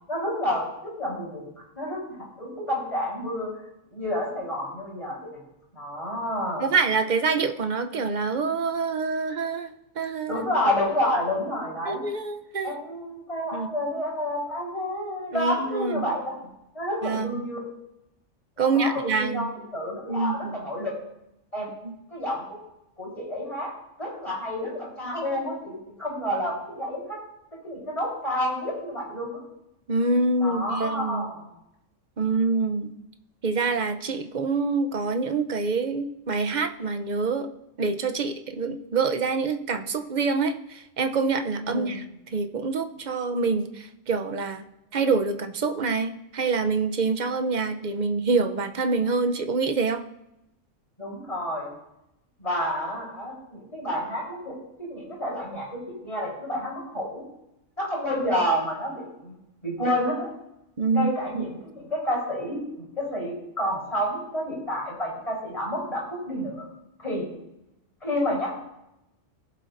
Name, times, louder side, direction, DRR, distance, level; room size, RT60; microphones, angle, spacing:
voice 1, 0.1-1.5 1.7-3.5 3.9-5.4 5.8-6.7 10.3-12.0 12.6-16.5 16.7-17.6 18.6-21.0 21.5-21.7 22.1-22.6 23.0-23.7 24.0-27.2 27.6-29.4 30.4-31.5 41.6-42.0 51.0-51.7 52.4-57.2 57.8-59.4 59.6-60.3 60.9-66.7 67.0-67.3 68.0-68.5, equal, 25° left, -5 dB, 4.1 m, -29 dB
voice 2, 6.6-10.4 11.8-12.7 13.5-13.7 15.3-16.1 17.0-17.4 18.6-19.5 20.1-20.5 21.8-21.9 29.9-31.3 32.2-32.9 33.4-37.5 37.8-42.0 42.3-44.7 44.9-50.0 60.8-61.5, right 4 dB, 45° right, 7 dB, 0.7 m, -26 dB
18.5 x 7.6 x 2.6 m, 0.86 s
omnidirectional pair, 1.3 m